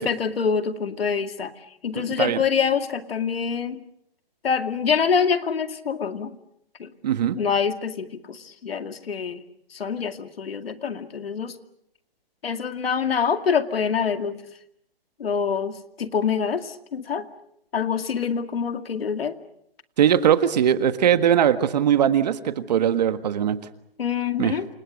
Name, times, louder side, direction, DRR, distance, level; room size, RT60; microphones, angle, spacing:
voice 1, 0.0-1.5 1.8-3.8 4.4-6.3 6.8-6.9 7.4-9.4 9.7-11.5 12.4-14.4 15.2-17.3 17.7-19.3 24.0-24.7, left 6 dB, 75° left, 8 dB, 2.3 m, -25 dB
voice 2, 1.9-2.4 7.0-7.4 20.0-23.6 24.4-24.6, right 9 dB, 45° right, 11 dB, 1.6 m, -20 dB
28.5 x 26.5 x 6.5 m, 0.76 s
hypercardioid pair, 160°, 30 cm